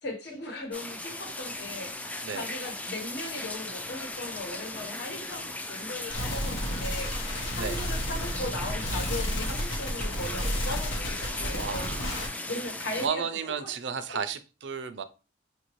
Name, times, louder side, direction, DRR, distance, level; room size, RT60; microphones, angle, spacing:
voice 1, 0.0-11.9 12.5-13.7 14.1-14.2, left 2 dB, 60° left, 2 dB, 1.2 m, -38 dB
sound 1, 0.7-13.1, left 2 dB, 10° left, 0.4 m, -37 dB
sound 2, 6.1-12.3, equal, 90° left, 1.0 m, -32 dB
voice 2, 11.5-12.1 13.0-15.0, right 6 dB, 65° right, 11 dB, 0.5 m, -33 dB
5.3 x 2.6 x 3.0 m, 0.31 s
head